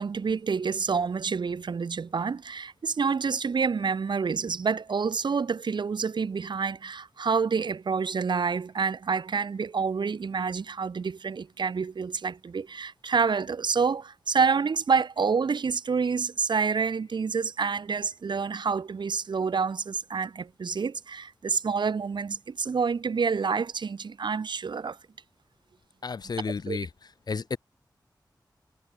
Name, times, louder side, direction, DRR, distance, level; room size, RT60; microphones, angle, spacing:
voice 1, 0.0-25.0 26.7-26.8, right 5 dB, 80° right, 1.1 m, -28 dB
voice 2, 26.0-26.9 27.3-27.6, left 5 dB, 60° left, 0.7 m, -31 dB
wide cardioid pair, 85°, 8 cm